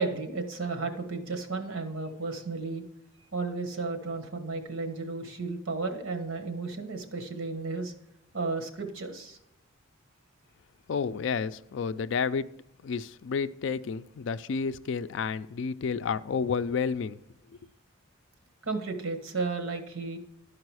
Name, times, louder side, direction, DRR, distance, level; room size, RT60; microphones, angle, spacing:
voice 1, 0.0-2.8 3.3-7.9 8.3-9.4 18.6-20.2, right 3 dB, 80° right, 1.3 m, -33 dB
voice 2, 10.9-12.5 12.8-17.2, left 5 dB, 65° left, 0.4 m, -30 dB
12.0 x 4.8 x 4.8 m
head